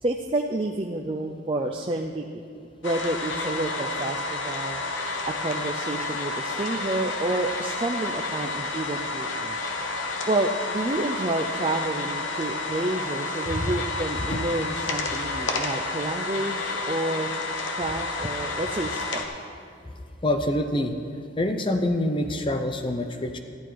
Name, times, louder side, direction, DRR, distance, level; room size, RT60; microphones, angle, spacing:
voice 1, 0.0-2.2 2.5-4.8 5.3-9.6 10.3-17.3 17.8-19.3, right 2 dB, 30° right, 1 dB, 0.4 m, -29 dB
sound 1, 2.8-19.2, left 3 dB, 80° left, 1.1 m, -30 dB
voice 2, 13.5-13.8 14.2-14.4 20.2-20.9 21.4-23.4, left 1 dB, 25° left, 6 dB, 0.6 m, -26 dB
14.0 x 10.5 x 4.6 m, 2.5 s
head